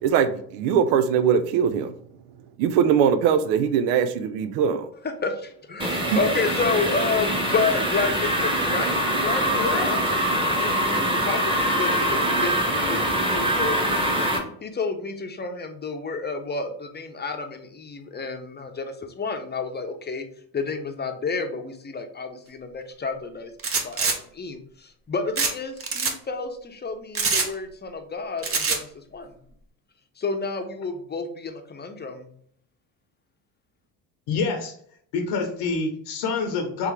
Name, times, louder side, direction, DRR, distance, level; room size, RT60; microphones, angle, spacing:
voice 1, 0.0-1.9 2.6-4.9 6.0-6.2, right 7 dB, 80° right, 0.6 m, -21 dB
voice 2, 5.2-14.2 14.6-20.2 20.5-23.5 23.8-29.4 30.2-32.3, left 4 dB, 20° left, 0.8 m, -30 dB
sound 1, 5.8-14.4, right 1 dB, 10° right, 1.2 m, -24 dB
voice 3, 9.6-9.9 34.3-34.7 35.1-36.9, left 4 dB, 70° left, 0.9 m, -26 dB
sound 2, 23.6-24.2 25.4-25.5 25.8-26.1 27.2-27.5 28.4-28.8, right 4 dB, 30° right, 0.9 m, -24 dB
3.5 x 3.3 x 3.2 m
hypercardioid pair, 65°, 45 cm